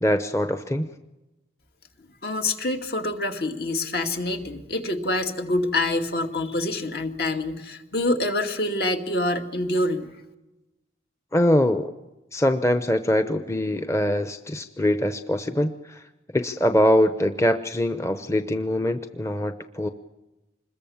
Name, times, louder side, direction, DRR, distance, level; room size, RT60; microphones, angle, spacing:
voice 1, 0.0-0.9 11.3-11.9 12.3-16.0 16.3-19.9, left 1 dB, 15° left, 8 dB, 0.8 m, -23 dB
voice 2, 2.2-10.1, left 2 dB, 60° left, 4 dB, 2.4 m, -26 dB
26.5 x 21.5 x 7.2 m, 1.0 s
head